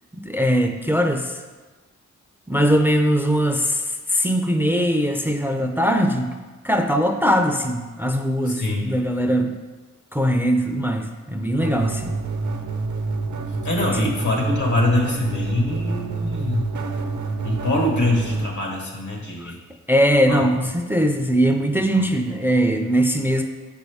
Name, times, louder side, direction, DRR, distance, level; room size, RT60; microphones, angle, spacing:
voice 1, 0.2-1.4 2.5-6.3 6.6-9.6 10.1-12.2 19.4-19.5 19.9-23.4, equal, 5° right, 5 dB, 0.4 m, -21 dB
voice 2, 8.5-8.9 13.6-16.7 17.4-19.6 20.3-20.4, left 2 dB, 75° left, 0 dB, 1.5 m, -23 dB
sound 1, 11.6-18.5, right 3 dB, 70° right, 0.8 m, -27 dB
6.1 x 5.4 x 3.5 m, 1.3 s
cardioid pair, 70°, 30 cm